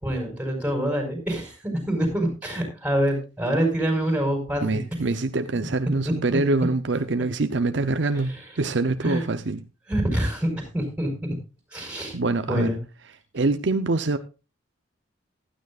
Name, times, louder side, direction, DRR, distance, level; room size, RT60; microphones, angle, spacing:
voice 1, 0.0-4.8 6.0-6.1 8.1-8.5 9.0-9.2 9.9-11.3 11.7-12.1 12.5-12.8, right 1 dB, 5° right, 4.6 m, -26 dB
voice 2, 4.6-9.6 12.1-12.7 13.3-14.2, right 3 dB, 60° right, 0.7 m, -24 dB
16.0 x 12.5 x 2.4 m
head